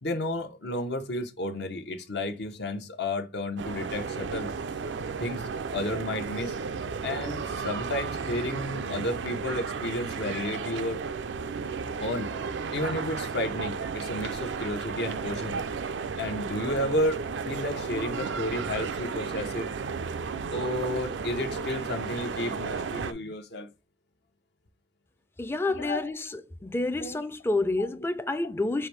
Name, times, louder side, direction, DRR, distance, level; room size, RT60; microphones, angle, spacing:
voice 1, 0.0-4.5 5.2-6.5 7.0-11.0 12.0-12.3 12.7-15.6 16.2-19.7 20.5-23.7 25.6-26.2 27.0-27.3 27.8-27.9, left 1 dB, 65° left, 0.8 m, -32 dB
sound 1, 3.6-23.1, right 5 dB, 85° right, 0.5 m, -33 dB
voice 2, 25.4-26.3 26.6-28.9, left 2 dB, 15° left, 0.4 m, -28 dB
5.7 x 2.6 x 3.3 m
head